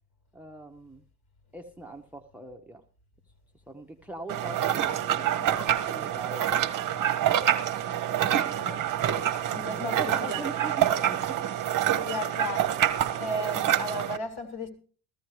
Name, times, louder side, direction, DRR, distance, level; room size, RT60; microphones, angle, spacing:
voice 1, 0.3-1.0 1.5-2.8 3.7-5.6 5.9-6.5 9.6-11.4, right 2 dB, 5° right, 0.8 m, -42 dB
sound 1, 4.3-14.2, right 11 dB, 40° right, 0.9 m, -27 dB
voice 2, 5.4-5.8 8.5-8.9 9.5-10.5 12.0-12.8 13.2-14.7, left 1 dB, 50° left, 2.8 m, -35 dB
14.5 x 14.0 x 3.2 m
supercardioid pair, 80°, 48 cm